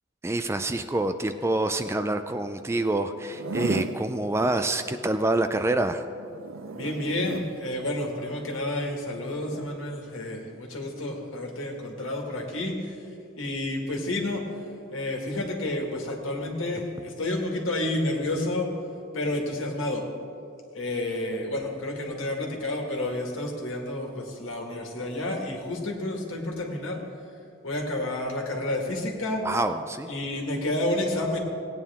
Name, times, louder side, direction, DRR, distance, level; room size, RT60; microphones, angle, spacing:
voice 1, 0.2-6.0 29.4-30.1, right 2 dB, 15° right, 9 dB, 0.3 m, -26 dB
Zipper (clothing), 3.2-4.0 6.2-7.5 9.4-9.7, right 4 dB, 80° right, 0.6 m, -34 dB
voice 2, 6.7-13.0 13.4-14.5 14.9-18.7 19.1-20.0 20.7-27.0 27.6-29.4 30.1-31.4, left 1 dB, 75° left, 1 dB, 1.8 m, -30 dB
17.5 x 9.3 x 3.6 m, 2.6 s
head